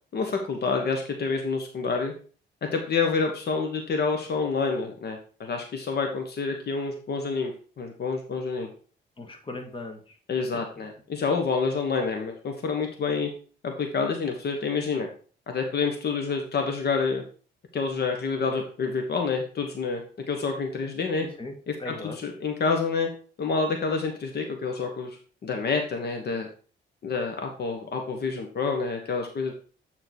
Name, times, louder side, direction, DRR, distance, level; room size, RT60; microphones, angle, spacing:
voice 1, 0.1-2.1 2.6-7.5 7.8-8.7 10.3-13.3 13.6-15.1 15.5-17.2 17.7-20.0 20.3-21.2 21.8-23.1 23.4-25.2 25.4-26.5 27.0-29.5, left 4 dB, 55° left, 4 dB, 1.3 m, -28 dB
voice 2, 9.2-10.2 21.2-21.5 21.8-22.2, left 2 dB, 25° left, 4 dB, 1.8 m, -38 dB
9.3 x 3.9 x 4.5 m, 0.40 s
cardioid pair, 90°, 20 cm